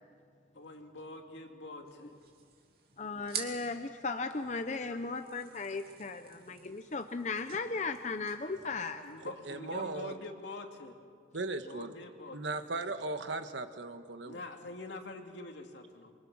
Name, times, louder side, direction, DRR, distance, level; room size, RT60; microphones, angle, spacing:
voice 1, 0.5-2.1 4.9-5.0 9.0-11.0 11.6-12.4 14.2-16.1, left 2 dB, 75° left, 3 dB, 2.5 m, -45 dB
sound 1, 1.9-9.5, right 7 dB, 55° right, 2.7 m, -48 dB
voice 2, 3.0-9.0, left 4 dB, 40° left, 7 dB, 0.7 m, -36 dB
voice 3, 9.2-10.2 11.3-12.0 12.3-14.4, right 3 dB, 75° right, 8 dB, 1.3 m, -37 dB
28.0 x 24.5 x 6.2 m, 2.1 s
head